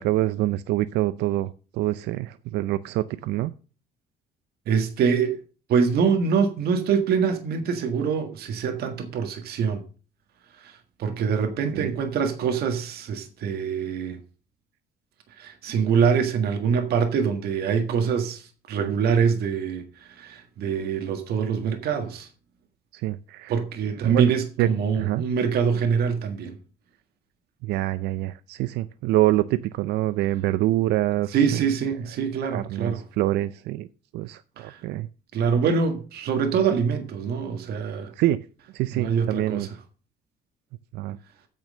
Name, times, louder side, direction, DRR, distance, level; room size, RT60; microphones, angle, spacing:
voice 1, 0.0-3.5 11.7-11.9 18.8-18.9 22.9-23.5 24.0-24.3 24.6-24.7 24.9-25.2 27.6-31.6 32.5-33.9 34.1-35.1 38.2-38.4 38.7-39.7 40.9-41.2, right 15 dB, 85° right, 0.5 m, -25 dB
voice 2, 4.7-5.4 5.7-9.8 10.6-14.2 15.4-18.4 18.7-22.3 23.5-26.6 31.3-33.0 34.6-34.8 35.3-38.1 38.9-39.8, right 6 dB, 70° right, 1.7 m, -24 dB
8.8 x 6.4 x 6.4 m
cardioid pair, 110°, 17 cm